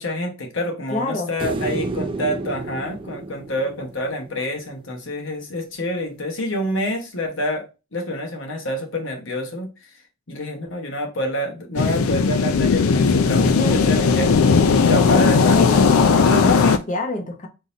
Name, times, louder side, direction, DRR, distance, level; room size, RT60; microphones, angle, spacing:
voice 1, 0.0-7.7 7.9-10.0 10.3-15.6 16.2-16.7, left 1 dB, 60° left, 1.0 m, -27 dB
voice 2, 0.9-1.3 13.6-13.8 15.6-17.5, left 1 dB, 35° left, 0.8 m, -27 dB
sound 1, 1.4-4.7 7.2-7.3, right 2 dB, 25° right, 0.3 m, -30 dB
sound 2, 11.8-16.8, left 5 dB, 85° left, 0.4 m, -17 dB
3.8 x 2.6 x 4.0 m
head